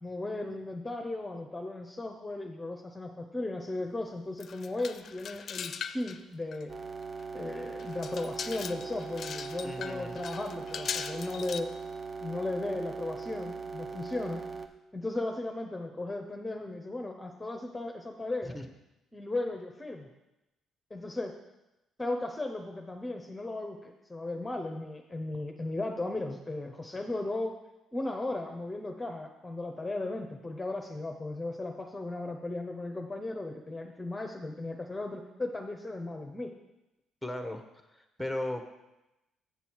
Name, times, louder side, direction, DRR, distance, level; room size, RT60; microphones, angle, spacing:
voice 1, 0.0-6.7 7.3-11.7 12.2-14.4 14.9-18.6 19.1-20.1 20.9-21.4 22.0-27.6 27.9-36.5, left 2 dB, 15° left, 2 dB, 0.8 m, -36 dB
sound 1, 4.4-6.2 6.5-6.6 7.2-7.3 7.8-11.6, left 7 dB, 55° left, 0.4 m, -40 dB
sound 2, 6.7-14.7, right 4 dB, 40° right, 0.7 m, -40 dB
voice 2, 9.6-10.3 18.4-18.7 37.2-37.6 37.9-38.7, left 1 dB, 5° right, 6 dB, 1.1 m, -36 dB
7.1 x 6.9 x 4.6 m, 0.96 s
supercardioid pair, 75°, 0 cm